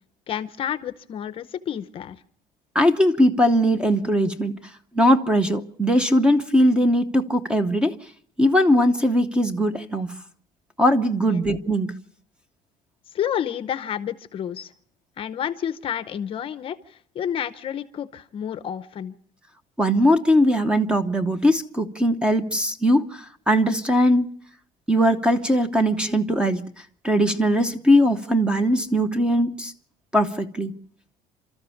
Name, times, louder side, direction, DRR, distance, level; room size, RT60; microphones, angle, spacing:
voice 1, 0.3-2.2 11.2-11.4 13.1-14.7 15.2-19.2, left 9 dB, 35° left, 0.8 m, -30 dB
voice 2, 2.7-4.5 4.9-8.0 8.4-10.2 10.8-12.0 19.8-24.3 24.9-26.7 27.0-29.7 30.1-30.7, equal, 5° right, 0.9 m, -20 dB
29.5 x 13.5 x 7.1 m
cardioid pair, 165°, 16 cm